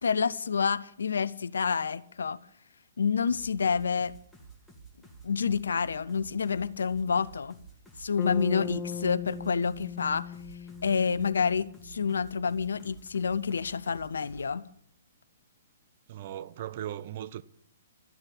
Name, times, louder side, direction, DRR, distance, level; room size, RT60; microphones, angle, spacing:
voice 1, 0.0-2.4 3.0-4.1 5.2-7.5 8.0-10.3 10.8-14.7, left 6 dB, 65° left, 0.7 m, -28 dB
sound 1, 3.3-14.5, right 4 dB, ahead, 2.0 m, -52 dB
Bass guitar, 8.2-12.3, left 8 dB, 20° left, 0.7 m, -39 dB
voice 2, 16.1-17.4, right 11 dB, 45° right, 0.7 m, -38 dB
13.0 x 9.7 x 8.6 m
figure-of-eight pair, 120°, 0 cm